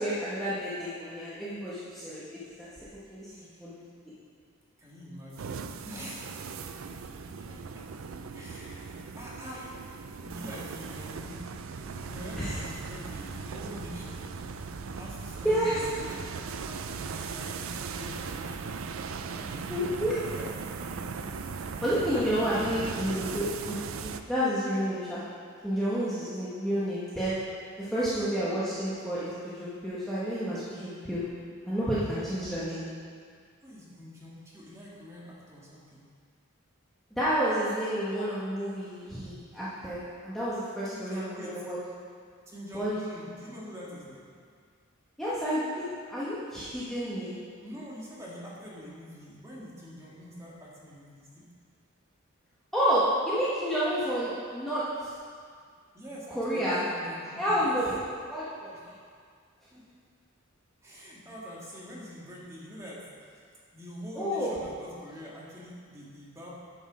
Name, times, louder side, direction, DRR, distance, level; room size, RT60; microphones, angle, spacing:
voice 1, 0.0-3.8 12.4-12.6 15.4-15.8 19.7-20.1 21.5-25.2 25.6-27.4 27.8-31.3 31.7-32.8 37.2-41.8 42.7-43.0 45.2-45.8 46.1-47.4 52.7-55.1 56.3-56.8 57.4-58.0 58.3-58.7 64.2-64.6, equal, ahead, -11 dB, 1.3 m, -30 dB
voice 2, 3.3-3.6 4.8-6.4 7.3-7.9 8.3-9.7 10.2-11.4 12.0-14.3 14.9-16.3 16.6-20.9 27.8-27.9 32.1-32.5 33.6-36.0 40.9-41.6 42.5-44.3 47.6-51.5 55.9-57.8 58.7-59.0 59.7-59.8 60.8-63.4 63.7-66.5, equal, 15° right, -6 dB, 1.8 m, -45 dB
sound 1, 5.3-24.2, right 5 dB, 70° right, 0.5 m, -38 dB
9.4 x 5.5 x 6.1 m, 2.1 s
head